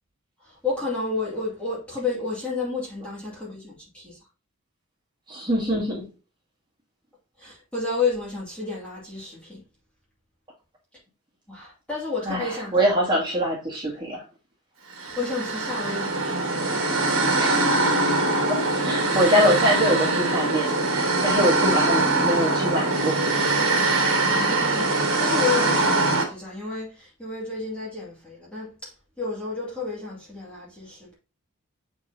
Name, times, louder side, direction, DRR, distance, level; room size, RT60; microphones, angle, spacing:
voice 1, 0.4-4.2 7.4-9.6 11.5-12.8 15.0-16.5 24.2-28.9 29.2-31.1, left 4 dB, 5° left, 2.4 m, -31 dB
voice 2, 5.3-6.1 12.2-14.2 17.4-18.1 18.5-23.2, equal, 20° right, 2.5 m, -24 dB
sound 1, 15.0-26.2, right 2 dB, 75° right, 2.3 m, -22 dB
7.8 x 4.6 x 2.8 m
head